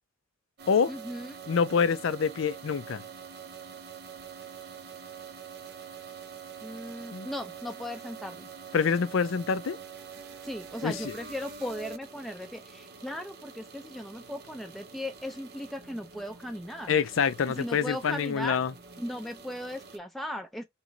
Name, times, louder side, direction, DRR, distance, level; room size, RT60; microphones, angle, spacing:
sound 1, 0.6-20.0, right 6 dB, 55° right, 0.6 m, -46 dB
voice 1, 0.9-1.4 6.6-8.5 10.4-16.9 17.6-18.6 19.0-20.6, left 1 dB, ahead, 0.4 m, -37 dB
voice 2, 1.5-3.0 7.1-7.3 8.7-9.8 10.8-11.2 16.9-18.7, left 6 dB, 85° left, 0.5 m, -26 dB
3.0 x 3.0 x 3.8 m
head